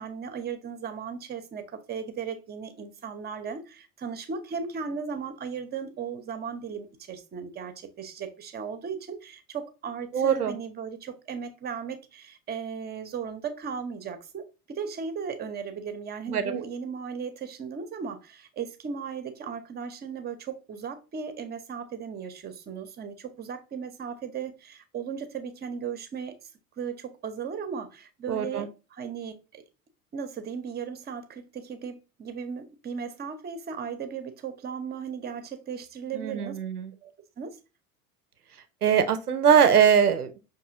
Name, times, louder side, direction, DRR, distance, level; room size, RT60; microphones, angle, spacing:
voice 1, 0.0-26.3 26.8-29.6 30.1-36.6 37.0-37.1 37.4-37.6, right 6 dB, 20° right, 0.6 m, -36 dB
voice 2, 10.1-10.5 16.3-16.5 28.3-28.7 36.1-36.9 38.8-40.4, right 7 dB, 90° right, 0.5 m, -22 dB
5.5 x 2.7 x 2.5 m
figure-of-eight pair, 65°, 44 cm